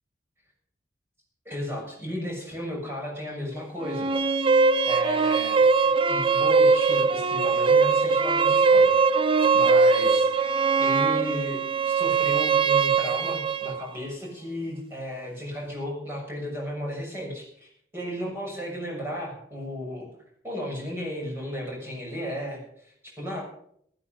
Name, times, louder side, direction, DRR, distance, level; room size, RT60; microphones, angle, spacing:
voice 1, 1.4-4.1 4.8-5.6 6.1-8.9 9.2-11.6 11.8-20.1 20.4-23.4, equal, 15° right, -2 dB, 6.6 m, -34 dB
sound 1, 3.8-13.8, right 4 dB, 30° right, 0.6 m, -21 dB
15.5 x 14.0 x 5.3 m, 0.66 s
head